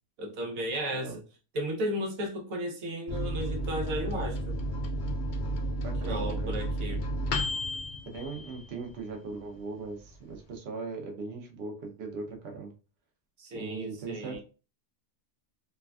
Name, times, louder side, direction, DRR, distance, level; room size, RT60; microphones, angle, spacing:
voice 1, 0.2-1.2 1.5-4.6 6.0-7.1 13.4-14.4, equal, 85° right, 1.2 m, -34 dB
Microwave oven, 3.1-9.2 9.6-9.7 9.9-10.6, equal, 55° left, 0.5 m, -32 dB
voice 2, 5.8-7.0 8.1-12.7 13.5-14.4, right 4 dB, 55° right, 0.9 m, -39 dB
3.3 x 2.2 x 2.3 m
omnidirectional pair, 1.4 m